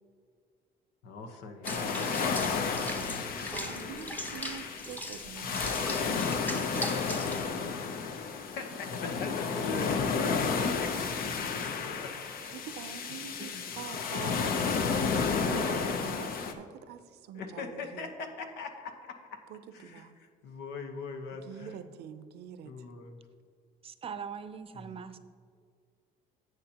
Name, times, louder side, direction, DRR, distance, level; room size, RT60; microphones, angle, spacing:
voice 1, 1.0-3.3 8.2-12.5 13.0-13.1 13.4-13.6 17.3-19.4 19.7-21.8 22.6-23.2 24.7-24.9, left 4 dB, 85° left, 5 dB, 1.1 m, -41 dB
sound 1, 1.6-16.5, left 5 dB, 60° left, 0.8 m, -32 dB
Water / Bathtub (filling or washing), 1.6-7.5, equal, 10° left, 0.9 m, -40 dB
voice 2, 3.5-7.8 12.4-18.1 19.5-20.1 21.3-22.9, right 9 dB, 75° right, 11 dB, 0.6 m, -45 dB
voice 3, 23.8-25.2, right 6 dB, 35° right, 11 dB, 0.6 m, -41 dB
11.0 x 8.2 x 2.9 m, 2.2 s
cardioid pair, 110°, 17 cm